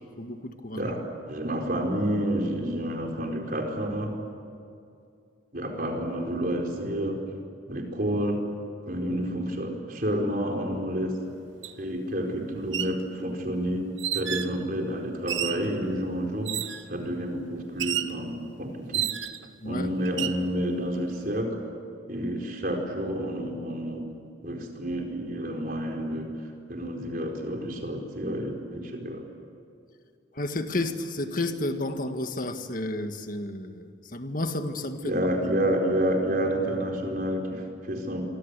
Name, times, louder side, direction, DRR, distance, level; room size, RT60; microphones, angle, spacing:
voice 1, 0.2-0.9 19.6-19.9 30.4-35.2, left 2 dB, 45° left, 7 dB, 1.8 m, -31 dB
voice 2, 0.7-4.1 5.5-7.2 7.7-8.4 8.9-11.2 11.8-13.8 14.1-19.1 19.6-21.6 22.1-24.0 24.4-26.3 26.7-29.2 35.0-38.2, equal, 50° right, 2 dB, 4.6 m, -29 dB
sound 1, 11.6-11.7 12.6-13.0 14.0-14.5 15.3-15.7 16.4-16.9 17.8-18.2 18.9-19.5 20.0-20.4, right 11 dB, 90° right, 1.2 m, -30 dB
27.5 x 24.5 x 8.3 m, 2.5 s
head